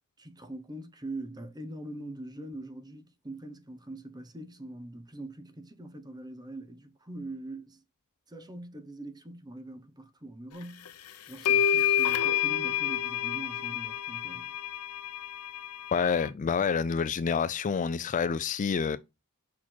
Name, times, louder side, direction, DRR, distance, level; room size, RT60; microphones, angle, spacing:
voice 1, 0.2-7.8 8.3-14.5, right 1 dB, 20° right, 0.9 m, -43 dB
sound 1, 10.8-10.9 11.4-16.3, left 9 dB, 75° left, 0.7 m, -29 dB
voice 2, 15.9-19.0, left 6 dB, 35° left, 0.3 m, -28 dB
5.9 x 4.6 x 4.4 m
head